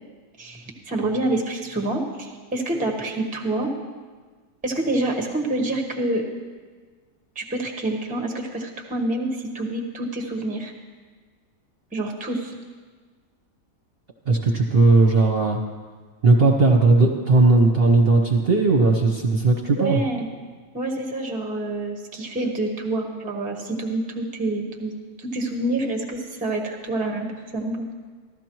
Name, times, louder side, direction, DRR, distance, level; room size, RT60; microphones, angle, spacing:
voice 1, 0.4-3.7 4.6-6.3 7.3-10.7 11.9-12.5 19.8-20.3 20.7-24.9 25.2-27.9, right 2 dB, 5° right, 2 dB, 0.8 m, -27 dB
voice 2, 14.2-15.6 16.2-20.0, right 3 dB, 45° right, -1 dB, 0.9 m, -17 dB
15.0 x 12.5 x 3.0 m, 1.5 s
omnidirectional pair, 1.8 m